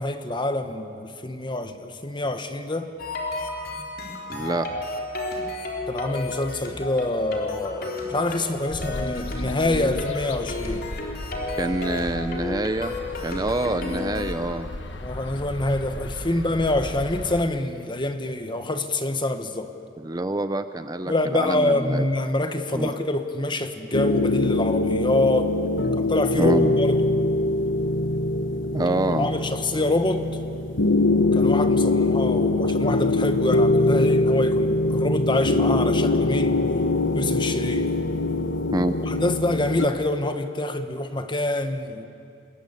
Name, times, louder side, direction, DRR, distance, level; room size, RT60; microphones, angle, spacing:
voice 1, 0.0-2.9 5.9-10.8 15.0-19.7 21.1-25.5 26.0-26.5 26.8-27.1 29.2-30.3 31.3-36.6 37.1-37.9 39.0-42.1, left 2 dB, 25° left, 8 dB, 1.4 m, -26 dB
sound 1, 3.0-14.4, left 2 dB, 55° left, 3.6 m, -32 dB
voice 2, 4.3-4.7 11.6-12.9 13.2-14.7 20.0-22.1 22.7-22.9 26.4-26.8 28.7-29.3 38.7-39.0, right 2 dB, 20° right, 9 dB, 0.7 m, -26 dB
sound 2, 8.7-17.4, left 1 dB, 70° left, 1.3 m, -36 dB
sound 3, 23.9-39.9, left 2 dB, 90° left, 1.1 m, -23 dB
28.0 x 21.5 x 8.4 m, 2.5 s
head